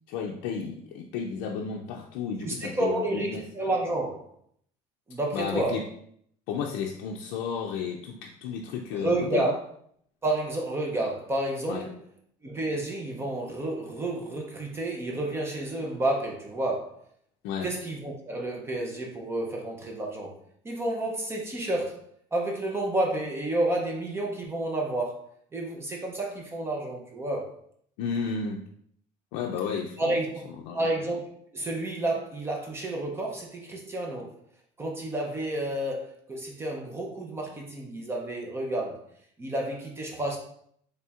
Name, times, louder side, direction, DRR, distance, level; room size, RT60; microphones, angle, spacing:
voice 1, 0.1-3.4 5.3-5.9 6.5-9.5 11.7-11.9 17.4-17.7 28.0-28.6 29.3-30.2 30.6-30.9, left 6 dB, 90° left, 0 dB, 0.4 m, -33 dB
voice 2, 2.4-4.3 5.1-5.8 8.9-9.6 10.2-12.0 12.4-17.0 17.6-20.4 20.6-22.0 22.3-25.2 25.5-27.5 30.0-31.2 31.5-34.3 34.8-39.0 39.4-40.4, right 1 dB, 15° right, 0 dB, 0.5 m, -30 dB
4.2 x 3.3 x 2.4 m, 0.66 s
cardioid pair, 150°, 14 cm